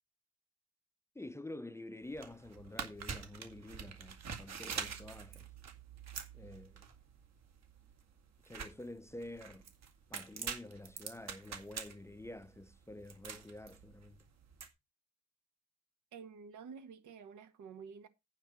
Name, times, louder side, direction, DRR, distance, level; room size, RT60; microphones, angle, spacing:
voice 1, 1.1-5.5 6.3-6.8 8.4-9.7 10.1-14.2, left 1 dB, 10° left, 0.6 m, -48 dB
sound 1, 2.0-14.7, right 6 dB, 60° right, 2.3 m, -46 dB
voice 2, 16.1-18.1, right 6 dB, 80° right, 1.7 m, -50 dB
9.2 x 4.5 x 7.3 m
cardioid pair, 90°, 30 cm